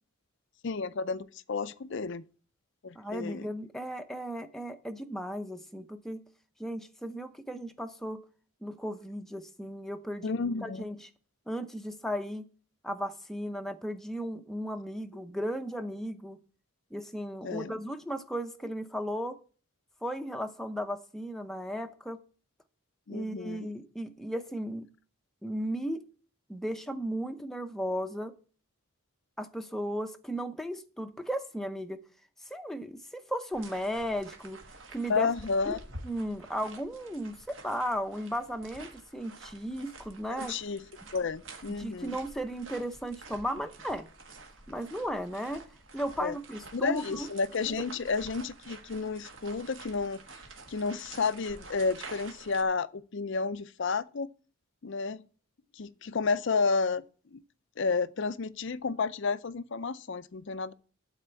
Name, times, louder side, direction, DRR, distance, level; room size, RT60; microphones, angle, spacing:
voice 1, 0.6-2.2 2.8-3.5 10.2-10.8 17.4-17.8 23.1-23.7 35.1-35.8 40.3-40.8 41.1-42.2 46.2-46.4 46.7-50.2 50.7-54.3 54.8-55.2 55.7-57.0 57.3-57.4 57.8-60.7, left 4 dB, 55° left, 0.5 m, -31 dB
voice 2, 3.0-6.2 6.6-8.2 8.6-10.3 10.6-11.0 11.5-12.5 12.8-16.4 16.9-19.4 20.0-22.2 23.1-24.9 25.4-26.0 26.5-28.3 29.4-32.0 32.5-34.6 34.9-35.3 35.7-35.8 36.0-40.5 41.7-44.1 44.7-45.6 45.9-47.3, equal, ahead, 0.7 m, -35 dB
sound 1, 33.5-52.6, right 3 dB, 55° right, 1.5 m, -49 dB
12.0 x 4.3 x 8.2 m
head